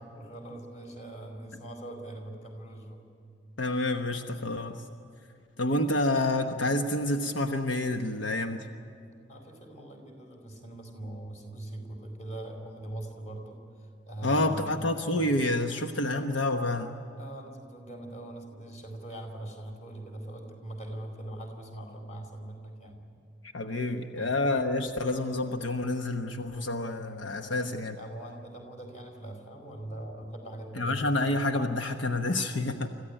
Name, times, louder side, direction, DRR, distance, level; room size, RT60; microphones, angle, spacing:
voice 1, 0.1-3.0 9.3-14.7 17.2-23.0 24.2-24.3 28.0-31.0 32.4-32.6, right 1 dB, 40° left, 3 dB, 4.5 m, -42 dB
voice 2, 3.6-4.8 5.6-8.7 14.2-16.9 23.5-28.0 30.7-32.9, left 2 dB, 90° left, 5 dB, 1.2 m, -28 dB
26.0 x 15.0 x 10.0 m, 2.5 s
head